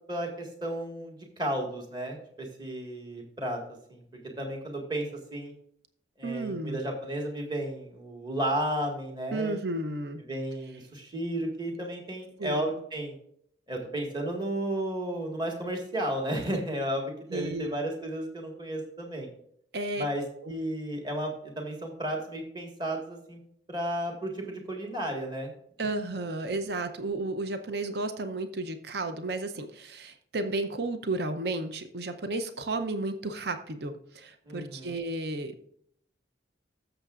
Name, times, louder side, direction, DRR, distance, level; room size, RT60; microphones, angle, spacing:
voice 1, 0.1-3.6 3.9-4.0 4.4-5.5 6.2-9.6 10.2-13.1 13.7-19.3 20.0-20.2 20.5-23.4 23.7-25.5 34.4-35.0, right 1 dB, 25° right, 1 dB, 1.6 m, -33 dB
voice 2, 6.2-6.8 9.3-10.2 12.4-12.7 17.3-17.7 19.7-20.1 20.4-20.5 25.8-35.6, right 2 dB, 60° right, 9 dB, 0.7 m, -33 dB
14.5 x 6.9 x 2.5 m, 0.68 s
head